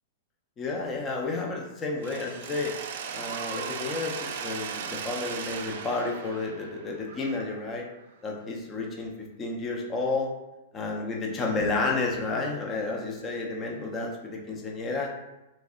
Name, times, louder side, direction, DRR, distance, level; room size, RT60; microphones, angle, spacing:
voice 1, 0.6-2.8 3.1-7.9 8.2-10.3 10.7-15.1, left 3 dB, 15° left, 0 dB, 0.5 m, -31 dB
Mechanisms, 2.0-7.9, right 6 dB, 55° right, 0.4 m, -37 dB
3.1 x 2.6 x 3.6 m, 0.97 s
supercardioid pair, 160°, 0 cm